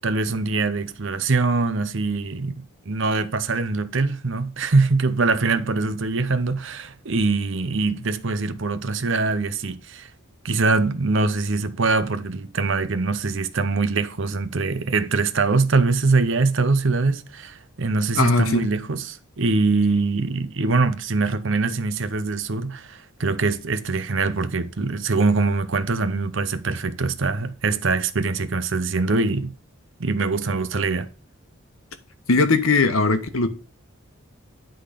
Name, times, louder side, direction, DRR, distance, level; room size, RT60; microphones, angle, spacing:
voice 1, 0.0-10.1 10.4-29.5 30.0-31.1, right 3 dB, 60° right, 0.7 m, -23 dB
voice 2, 18.1-18.7 32.3-33.5, left 3 dB, 80° left, 1.1 m, -19 dB
10.0 x 3.9 x 5.0 m
head